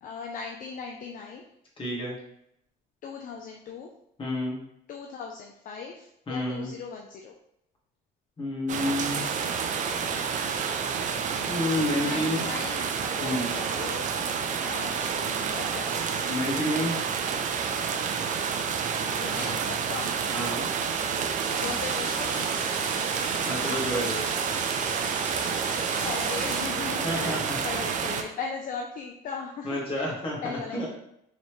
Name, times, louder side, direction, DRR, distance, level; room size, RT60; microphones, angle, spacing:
voice 1, 0.0-1.4 3.0-3.9 4.9-7.3 12.0-16.3 18.9-20.1 21.6-22.6 26.0-30.2 30.4-30.9, left 5 dB, 55° left, 1 dB, 0.5 m, -38 dB
voice 2, 1.8-2.1 4.2-4.6 6.3-6.7 8.4-9.3 11.1-12.4 13.2-13.5 16.3-17.0 20.3-20.7 23.4-24.3 27.0-27.8 29.6-30.4 30.7-30.9, left 1 dB, 30° left, -3 dB, 1.6 m, -29 dB
sound 1, 8.7-28.2, right 6 dB, 50° right, 0.5 m, -29 dB
sound 2, 21.4-26.6, right 2 dB, 25° right, 1.2 m, -38 dB
4.0 x 3.1 x 3.1 m, 0.76 s
cardioid pair, 110°, 17 cm